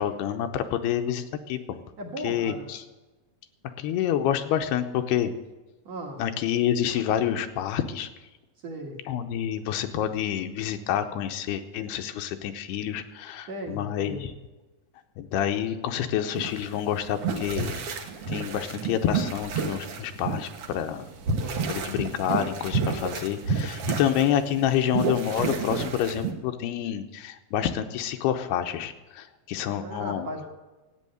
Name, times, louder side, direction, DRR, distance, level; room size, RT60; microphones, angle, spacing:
voice 1, 0.0-1.8 2.2-2.8 3.8-5.3 6.2-8.1 9.1-14.3 15.2-17.8 18.3-21.1 21.7-30.3, left 10 dB, 85° left, 7 dB, 2.9 m, -28 dB
voice 2, 2.0-2.7 5.9-6.2 8.6-9.0 13.5-14.2 21.3-21.7 29.8-30.5, right 1 dB, 50° right, 0 dB, 2.4 m, -37 dB
sound 1, 16.3-26.3, right 5 dB, 70° right, 1.3 m, -30 dB
14.0 x 9.2 x 7.9 m, 1.2 s
omnidirectional pair, 4.6 m